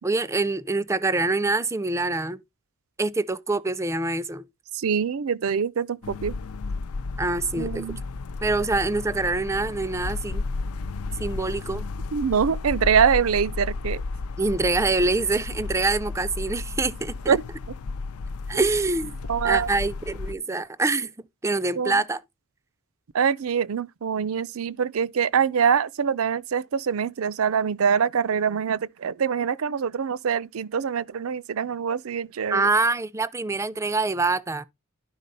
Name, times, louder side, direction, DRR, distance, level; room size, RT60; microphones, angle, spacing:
voice 1, 0.0-2.4 3.0-4.4 7.2-7.9 8.4-10.4 11.2-11.9 14.4-17.4 18.5-19.2 19.4-21.1 21.4-22.2 32.5-34.7, right 3 dB, 15° right, 0.4 m, -25 dB
voice 2, 4.7-6.4 7.6-8.0 12.1-14.0 17.3-17.4 19.3-19.7 21.8-21.9 23.1-32.7, right 7 dB, 70° right, 0.5 m, -24 dB
sound 1, 6.0-20.3, left 3 dB, 90° left, 0.5 m, -33 dB
11.5 x 4.0 x 5.4 m
head